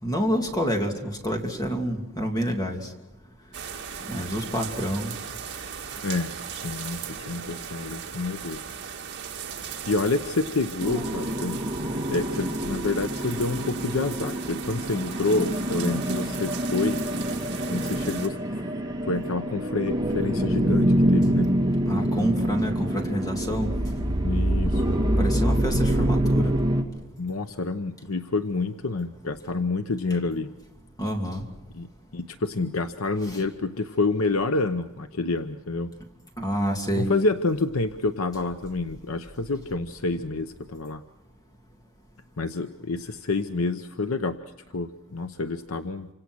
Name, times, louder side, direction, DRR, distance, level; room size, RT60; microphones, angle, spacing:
voice 1, 0.0-2.9 4.1-5.1 21.9-23.7 25.2-26.5 31.0-31.4 33.2-33.4 36.4-37.1, equal, 20° left, 2 dB, 2.7 m, -28 dB
sound 1, 3.5-18.3, right 7 dB, 55° right, 2.3 m, -38 dB
voice 2, 6.0-8.6 9.9-11.6 12.1-17.0 17.7-18.6 19.0-21.5 24.2-24.8 27.2-30.5 31.7-35.9 37.0-41.0 42.4-44.4 44.7-46.1, left 3 dB, 70° left, 8 dB, 0.9 m, -28 dB
sound 2, 10.8-26.8, right 1 dB, 20° right, 2.4 m, -25 dB
28.0 x 26.0 x 6.3 m, 0.99 s
head